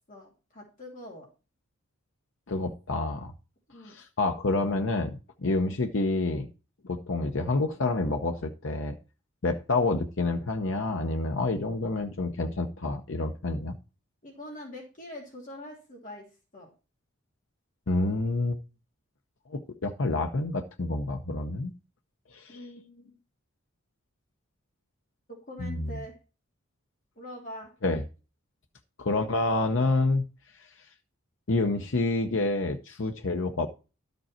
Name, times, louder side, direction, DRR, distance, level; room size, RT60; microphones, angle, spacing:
voice 1, 0.1-1.3 3.7-4.0 14.2-16.2 16.5-16.7 22.5-23.2 25.3-26.1 27.1-27.7, left 1 dB, 40° left, 3.0 m, -44 dB
voice 2, 2.5-3.3 3.8-6.5 6.8-8.9 9.4-13.8 17.9-18.6 19.5-21.7 22.3-22.6 25.6-26.0 27.8-28.0 29.0-30.2 31.5-33.7, left 2 dB, 65° left, 0.8 m, -28 dB
12.5 x 5.3 x 4.3 m
head